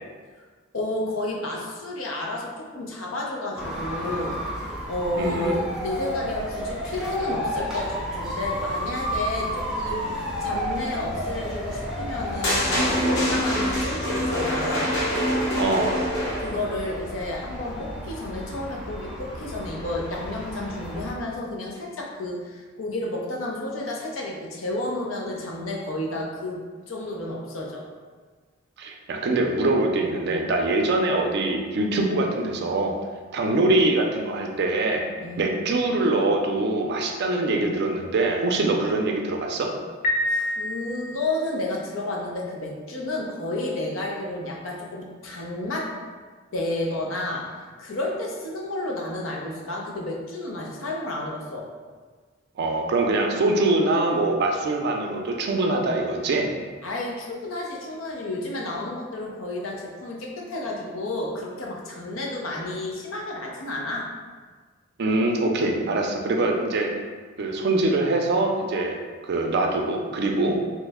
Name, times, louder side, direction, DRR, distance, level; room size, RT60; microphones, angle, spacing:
voice 1, 0.7-12.8 13.1-14.9 16.4-27.8 35.2-35.4 40.3-45.9 46.5-47.5 47.8-51.6 56.8-64.1, left 2 dB, 85° left, -1 dB, 0.6 m, -31 dB
sound 1, 3.6-21.1, equal, 5° right, 0.5 m, -32 dB
voice 2, 5.2-5.6 15.6-16.0 28.8-32.9 33.3-35.0 35.4-39.7 52.6-56.5 65.0-66.9 67.4-69.0 69.2-70.6, right 2 dB, 55° right, 2 dB, 0.4 m, -23 dB
sound 2, 12.4-16.7, equal, 60° left, 0.9 m, -25 dB
Piano, 40.0-41.5, left 1 dB, 45° left, 0.5 m, -27 dB
3.0 x 2.1 x 3.4 m, 1.5 s
head